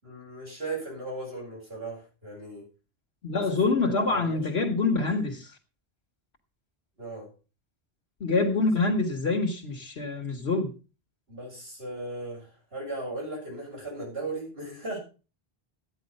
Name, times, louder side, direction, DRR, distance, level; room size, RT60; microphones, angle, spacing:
voice 1, 0.0-2.6 3.3-4.4 7.0-7.3 11.3-15.0, right 2 dB, 65° right, 7.6 m, -37 dB
voice 2, 3.2-5.5 8.2-10.7, left 3 dB, 70° left, 1.6 m, -26 dB
12.5 x 9.7 x 5.4 m
omnidirectional pair, 1.1 m